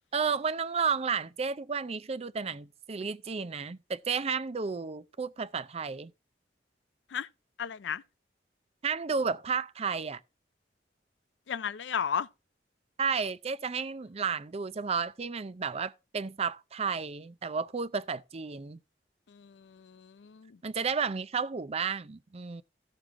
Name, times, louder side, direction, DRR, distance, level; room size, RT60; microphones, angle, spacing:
voice 1, 0.1-6.1 8.8-10.2 13.0-18.8 20.6-22.6, right 5 dB, 35° right, 0.5 m, -32 dB
voice 2, 7.6-8.0 11.5-12.3 19.3-20.6, left 7 dB, 85° left, 0.4 m, -34 dB
14.5 x 6.6 x 3.6 m
head